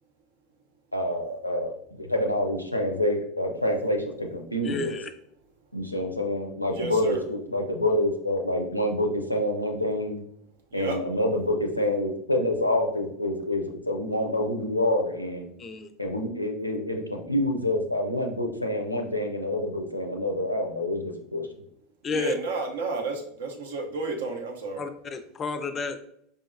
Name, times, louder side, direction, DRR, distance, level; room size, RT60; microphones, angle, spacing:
voice 1, 0.9-5.0 5.7-10.2 10.7-15.5 16.0-21.5, left 1 dB, 90° left, 2 dB, 0.5 m, -27 dB
voice 2, 4.6-5.1 15.6-15.9 22.0-22.3 24.8-26.0, left 5 dB, 25° left, 10 dB, 0.4 m, -31 dB
voice 3, 6.7-7.2 10.7-11.0 22.1-24.8, right 3 dB, 65° right, 2 dB, 0.7 m, -31 dB
5.0 x 2.7 x 2.6 m, 0.71 s
figure-of-eight pair, 80°, 0 cm